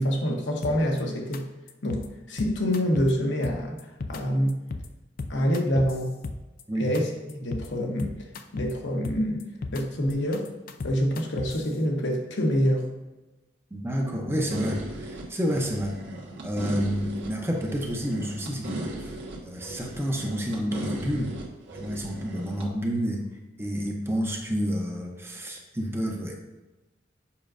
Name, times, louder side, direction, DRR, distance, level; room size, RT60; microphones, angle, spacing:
voice 1, 0.0-1.4 1.8-3.8 4.1-4.6 5.3-6.1 6.8-7.1 7.4-8.3 8.5-9.4 9.7-10.5 10.8-12.9, equal, 70° left, 1 dB, 1.0 m, -26 dB
sound 1, 0.6-1.0 1.3-1.4 1.7-2.1 2.4-3.1 3.4-4.2 4.5-4.9 5.2-6.6 6.9-7.0 7.3-7.7 8.0-8.7 9.0-9.8 10.1-11.7, left 3 dB, 50° left, 0.4 m, -34 dB
voice 2, 13.7-16.0 16.4-19.1 19.4-21.3 21.8-23.3 23.6-26.3, equal, 15° right, 1 dB, 0.7 m, -29 dB
sound 2, 14.5-22.7, right 1 dB, 80° right, 1.2 m, -37 dB
7.2 x 5.2 x 2.6 m, 1.1 s
head